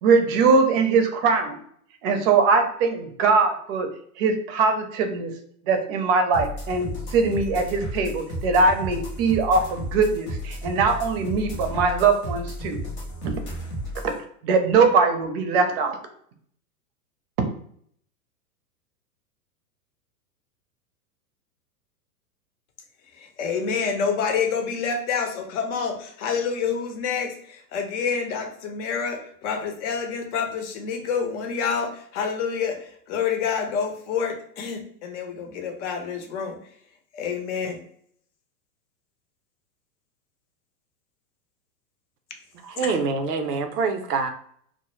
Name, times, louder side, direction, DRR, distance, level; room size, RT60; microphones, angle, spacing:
voice 1, 0.0-1.6 2.0-3.9 4.2-5.3 5.7-12.8 13.2-13.4 14.4-16.0, right 4 dB, 40° right, 6 dB, 0.5 m, -21 dB
sound 1, 6.3-14.1, equal, 25° left, 0.3 m, -33 dB
voice 2, 23.1-36.6 37.1-37.8 42.8-42.9, left 6 dB, 50° left, 5 dB, 0.7 m, -28 dB
voice 3, 42.6-44.3, right 4 dB, 85° right, 7 dB, 0.6 m, -25 dB
2.1 x 2.0 x 3.0 m, 0.63 s
hypercardioid pair, 110°, 47 cm